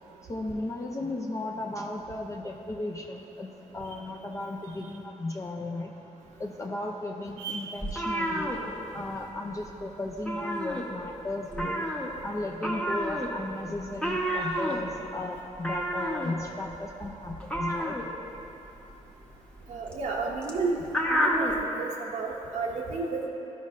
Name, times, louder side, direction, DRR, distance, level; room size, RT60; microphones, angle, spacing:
voice 1, 0.3-5.9 6.4-8.5 8.9-11.8 12.2-18.0, left 2 dB, 25° left, 0 dB, 0.5 m, -35 dB
voice 2, 7.4-7.7 19.7-20.8 21.1-23.3, right 4 dB, 80° right, -3 dB, 0.7 m, -32 dB
sound 1, 7.8-9.3 9.6-9.8 10.1-11.2 11.5-21.6, equal, 10° left, 0.9 m, -31 dB
12.5 x 5.3 x 2.6 m, 3.0 s
cardioid pair, 80°, 13 cm